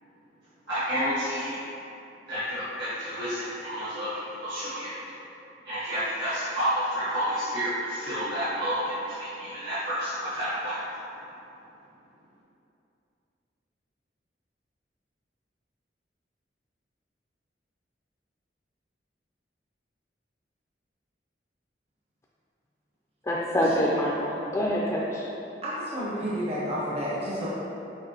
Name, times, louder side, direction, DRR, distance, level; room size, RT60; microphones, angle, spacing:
voice 1, 0.7-1.6 2.3-4.1 4.4-4.9 5.6-10.8, equal, 70° right, -14 dB, 1.2 m, -30 dB
voice 2, 23.2-25.3, equal, 15° left, -4 dB, 0.3 m, -26 dB
voice 3, 25.6-27.5, equal, 35° right, -7 dB, 0.6 m, -30 dB
5.9 x 2.9 x 2.8 m, 2.9 s
head